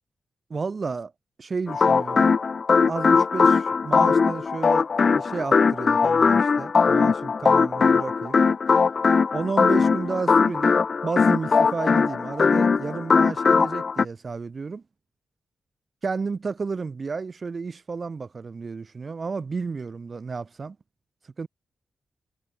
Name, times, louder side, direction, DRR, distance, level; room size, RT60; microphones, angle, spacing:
voice 1, 0.5-1.1 1.4-2.3 2.9-8.4 9.3-14.8 16.0-20.8 21.4-21.5, right 4 dB, 35° right, 4.8 m, -32 dB
sound 1, 1.7-14.1, left 5 dB, 40° left, 0.3 m, -20 dB
wide cardioid pair, 155°, 0 cm